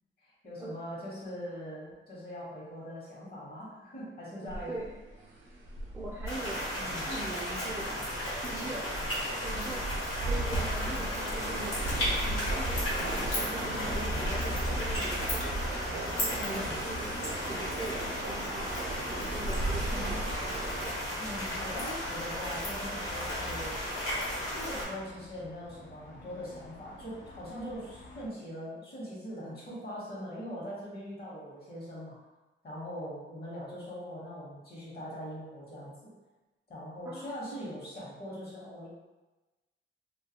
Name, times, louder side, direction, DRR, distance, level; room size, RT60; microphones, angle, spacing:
voice 1, 0.2-4.7 6.8-7.1 10.5-11.0 11.5-11.6 16.3-16.8 19.9-20.2 21.2-23.8 24.5-32.2 32.6-36.1 36.7-38.9, equal, 50° left, -6 dB, 1.0 m, -42 dB
voice 2, 4.4-4.9 5.9-6.7 7.1-7.9 8.4-9.0 9.4-9.8 10.2-15.6 16.2-17.2 17.5-18.8 19.1-20.3 37.1-37.4, right 2 dB, 10° right, -4 dB, 0.3 m, -42 dB
sound 1, 4.5-20.9, right 2 dB, 70° right, 0.6 m, -37 dB
sound 2, 6.3-24.8, equal, 90° left, 1.1 m, -34 dB
sound 3, 9.2-28.3, left 2 dB, 65° left, 0.4 m, -46 dB
2.3 x 2.3 x 2.7 m, 1.1 s
cardioid pair, 115°, 20 cm